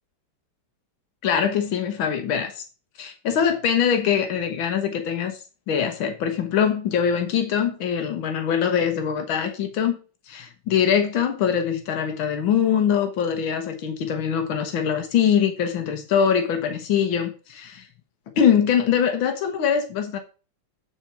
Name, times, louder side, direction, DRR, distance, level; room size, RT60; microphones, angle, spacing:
voice 1, 1.2-2.6 3.0-5.4 5.7-10.0 10.3-17.9 18.4-20.2, left 8 dB, 80° left, 1.9 m, -23 dB
9.0 x 4.5 x 5.8 m
omnidirectional pair, 2.1 m